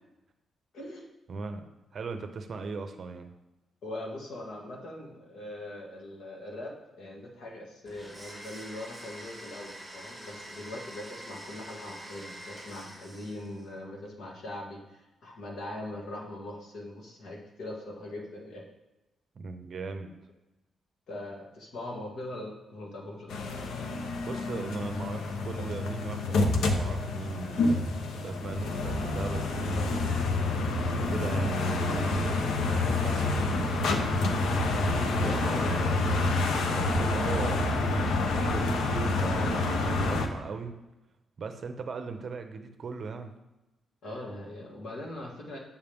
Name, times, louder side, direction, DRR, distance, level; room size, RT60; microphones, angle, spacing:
voice 1, 0.7-1.1 3.8-18.7 21.1-23.4 35.3-36.0 44.0-45.6, left 1 dB, 60° left, -1 dB, 1.8 m, -41 dB
voice 2, 1.3-3.3 19.4-20.1 24.2-27.9 28.1-30.0 31.1-34.1 35.0-36.3 36.7-37.7 38.3-40.7 41.4-43.3, right 4 dB, 40° right, 7 dB, 0.7 m, -38 dB
Domestic sounds home sounds, 7.8-13.7, equal, 10° left, 2.8 m, -45 dB
sound 1, 23.3-40.3, left 2 dB, 85° left, 0.8 m, -28 dB
7.2 x 7.2 x 3.5 m, 1.0 s
wide cardioid pair, 165°, 0 cm